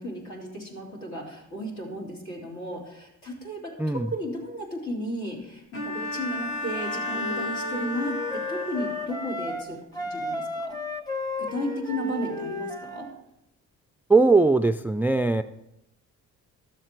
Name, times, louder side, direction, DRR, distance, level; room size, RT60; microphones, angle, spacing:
voice 1, 0.0-10.8 11.4-13.1, equal, 65° left, -1 dB, 3.4 m, -34 dB
voice 2, 3.8-4.1 14.1-15.4, right 3 dB, 5° right, 12 dB, 0.3 m, -20 dB
Bowed string instrument, 5.7-9.4, left 2 dB, 45° left, 2.0 m, -33 dB
Wind instrument woodwind instrument, 6.7-9.7 9.9-13.1, left 2 dB, 15° left, 1.2 m, -34 dB
12.5 x 7.4 x 4.5 m, 0.87 s
cardioid pair, 90°, 30 cm